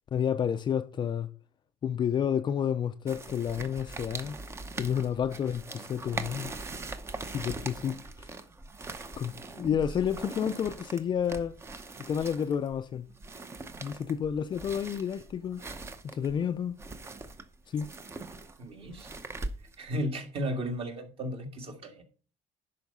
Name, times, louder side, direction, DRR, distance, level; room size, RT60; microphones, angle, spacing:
voice 1, 0.1-1.3 1.8-4.4 4.8-6.5 7.2-8.0 9.2-11.5 12.1-13.1 13.8-15.6 16.0-16.8 17.7-17.9, left 8 dB, 30° left, 0.5 m, -30 dB
sound 1, 3.1-19.9, right 3 dB, 20° right, 0.7 m, -42 dB
voice 2, 18.6-19.1 19.8-22.0, equal, 40° right, 1.9 m, -34 dB
10.5 x 4.6 x 5.4 m
cardioid pair, 145°, 14 cm